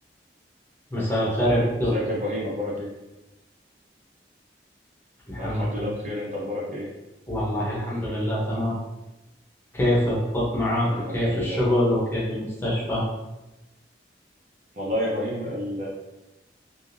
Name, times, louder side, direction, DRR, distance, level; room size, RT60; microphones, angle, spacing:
voice 1, 0.9-1.9 5.3-5.9 7.3-8.8 9.7-13.1, equal, 15° left, -7 dB, 0.8 m, -24 dB
voice 2, 1.8-2.9 5.4-6.9 10.8-11.6 14.8-15.9, left 1 dB, 40° right, -4 dB, 0.7 m, -30 dB
3.5 x 2.5 x 2.6 m, 1.0 s
head